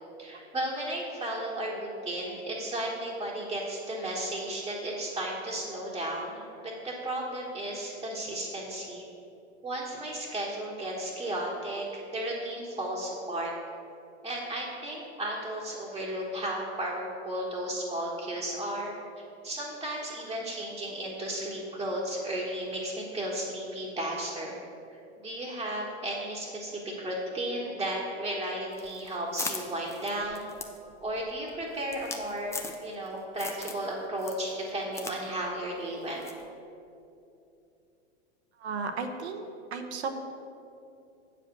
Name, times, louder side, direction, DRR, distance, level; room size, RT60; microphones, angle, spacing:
voice 1, 0.2-9.0 9.6-13.5 14.2-18.9 19.4-24.6 24.9-30.5 31.0-36.2, right 1 dB, 10° right, -6 dB, 1.3 m, -34 dB
sound 1, 28.7-33.1 33.4-33.9 34.2-35.2 35.4-35.5 36.2-36.5, left 3 dB, 10° left, 0.6 m, -39 dB
voice 2, 38.6-40.2, right 4 dB, 70° right, 5 dB, 1.0 m, -34 dB
8.2 x 5.1 x 6.7 m, 2.7 s
hypercardioid pair, 95°, 35 cm